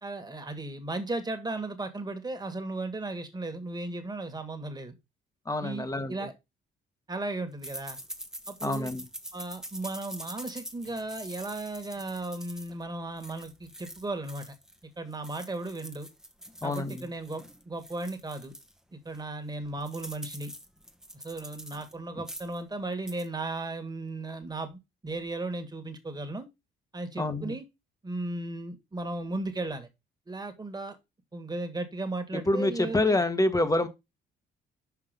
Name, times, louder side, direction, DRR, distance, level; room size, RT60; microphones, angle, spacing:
voice 1, 0.0-4.9 5.6-6.3 7.1-8.0 8.5-8.9 9.3-14.5 15.0-16.1 16.6-18.5 18.9-20.5 21.1-26.5 26.9-27.6 28.0-29.9 30.3-31.0 31.3-33.2, right 2 dB, 20° right, 1.9 m, -36 dB
voice 2, 5.5-6.1 8.6-9.0 16.6-17.1 27.2-27.5 32.3-33.9, left 2 dB, 15° left, 1.3 m, -27 dB
sound 1, 7.6-14.8 15.1-18.7 19.1-19.2 19.5-21.9 22.2-22.6 22.9-23.3, equal, 5° right, 1.1 m, -45 dB
6.0 x 5.3 x 5.3 m
cardioid pair, 90°, 20 cm